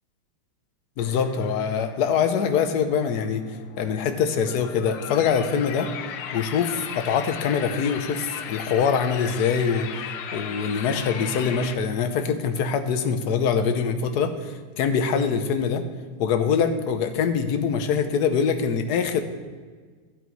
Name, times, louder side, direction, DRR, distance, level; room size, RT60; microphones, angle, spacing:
sound 1, 1.0-11.8, left 8 dB, 90° left, 1.7 m, -37 dB
voice 1, 1.0-3.5 3.8-5.9 6.3-9.9 10.3-15.8 16.2-19.2, left 6 dB, 60° left, 8 dB, 1.2 m, -24 dB
12.5 x 8.8 x 4.7 m, 1.5 s
omnidirectional pair, 2.3 m